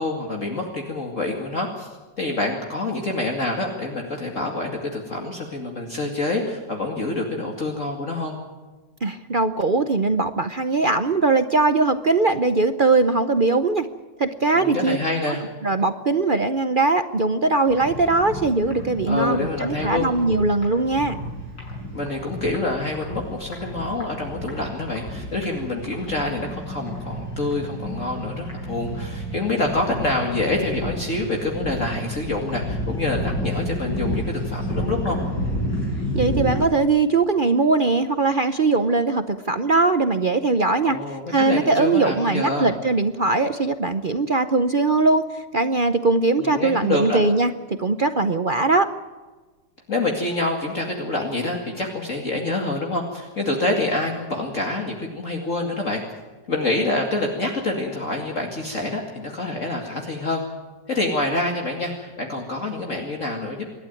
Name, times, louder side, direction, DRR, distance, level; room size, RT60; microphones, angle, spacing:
voice 1, 0.0-1.9 2.2-8.4 14.5-15.4 19.1-20.1 21.9-35.2 40.8-42.7 46.4-47.2 49.9-56.0 56.5-60.4 60.9-63.7, left 2 dB, 45° left, 1 dB, 2.6 m, -26 dB
voice 2, 9.0-13.9 14.2-15.0 15.6-21.2 36.1-41.0 41.3-45.2 45.5-48.9, right 3 dB, 50° right, 9 dB, 0.6 m, -20 dB
sound 1, 17.7-36.6, equal, 75° left, 7.0 m, -31 dB
27.0 x 12.0 x 9.2 m, 1.3 s
omnidirectional pair, 1.9 m